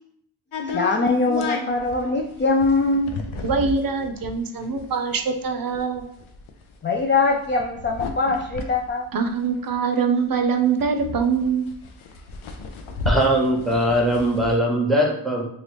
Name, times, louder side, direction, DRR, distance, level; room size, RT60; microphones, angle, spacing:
sound 1, 0.5-10.0 10.3-10.4 10.6-14.6, left 3 dB, 75° left, 0.6 m, -33 dB
voice 1, 0.6-3.2 6.8-9.1, left 3 dB, 25° left, 2 dB, 0.3 m, -22 dB
voice 2, 3.4-6.1 9.1-11.7, right 5 dB, 45° right, 6 dB, 0.6 m, -23 dB
voice 3, 13.1-15.4, equal, ahead, 0 dB, 0.9 m, -20 dB
2.9 x 2.5 x 3.3 m, 0.73 s
cardioid pair, 45°, 49 cm